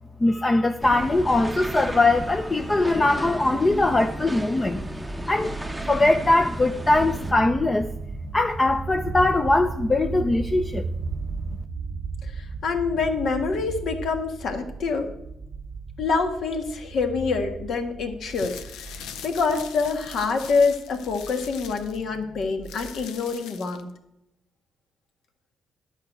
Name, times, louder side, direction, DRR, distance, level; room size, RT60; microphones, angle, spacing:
voice 1, 0.2-4.8 5.3-5.5 5.9-7.9 8.3-10.9, left 2 dB, 25° left, 0.5 m, -21 dB
sound 1, 0.8-7.3, right 1 dB, 5° right, 0.7 m, -33 dB
sound 2, 5.8-23.0, right 4 dB, 35° right, 0.8 m, -36 dB
voice 2, 12.3-15.1 16.0-18.9 19.2-23.9, left 4 dB, 65° left, 1.5 m, -26 dB
sound 3, 18.2-23.9, left 8 dB, 90° left, 0.6 m, -42 dB
10.5 x 4.7 x 8.0 m
cardioid pair, 90°, 0 cm